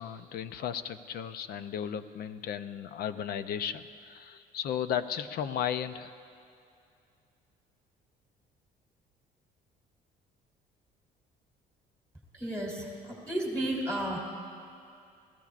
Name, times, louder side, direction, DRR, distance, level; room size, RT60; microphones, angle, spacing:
voice 1, 0.0-6.1, left 9 dB, 65° left, 11 dB, 0.7 m, -35 dB
voice 2, 12.3-14.2, right 1 dB, 5° left, -3 dB, 3.3 m, -33 dB
30.0 x 15.5 x 2.5 m, 2.5 s
cardioid pair, 110°, 17 cm